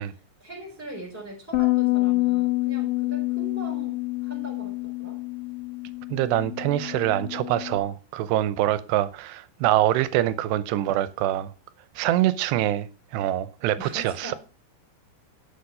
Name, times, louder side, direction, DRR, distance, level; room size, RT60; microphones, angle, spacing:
voice 1, 0.0-5.2 13.7-14.3, right 1 dB, 5° right, 3.4 m, -41 dB
Bass guitar, 1.5-7.8, left 21 dB, 85° left, 3.5 m, -27 dB
voice 2, 6.1-11.5 12.0-12.9 13.1-14.3, right 13 dB, 80° right, 2.8 m, -24 dB
11.5 x 7.3 x 6.7 m
omnidirectional pair, 5.0 m